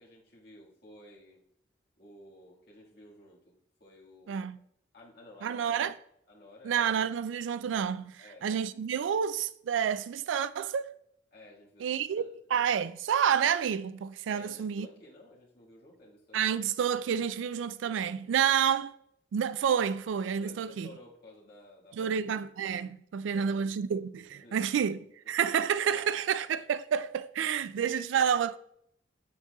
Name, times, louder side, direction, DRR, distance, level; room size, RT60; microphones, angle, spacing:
voice 1, 0.0-1.4 2.0-3.5 3.8-4.4 4.9-5.9 6.3-6.9 8.2-8.5 11.3-12.3 14.3-16.4 18.4-18.5 20.4-22.2 23.2-23.6 24.3-24.9 25.2-25.3 25.9-26.2 27.6-27.7, left 1 dB, 55° left, 1.8 m, -54 dB
voice 2, 4.3-4.6 5.4-5.9 6.6-10.9 11.8-14.9 16.3-18.9 19.3-20.9 21.9-28.6, right 8 dB, 85° right, 0.3 m, -29 dB
7.3 x 6.7 x 2.3 m
head